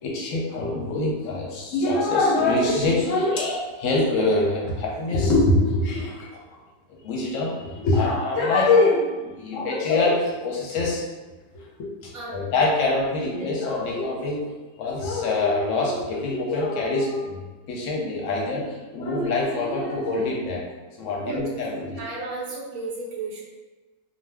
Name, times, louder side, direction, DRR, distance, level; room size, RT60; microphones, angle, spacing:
voice 1, 0.0-6.4 7.0-11.0 11.5-14.4 14.8-17.4 17.7-20.6 21.0-22.0, left 2 dB, 65° left, -2 dB, 0.9 m, -24 dB
voice 2, 22.0-23.4, right 3 dB, 70° right, -3 dB, 1.0 m, -33 dB
2.6 x 2.3 x 3.3 m, 1.2 s
omnidirectional pair, 1.7 m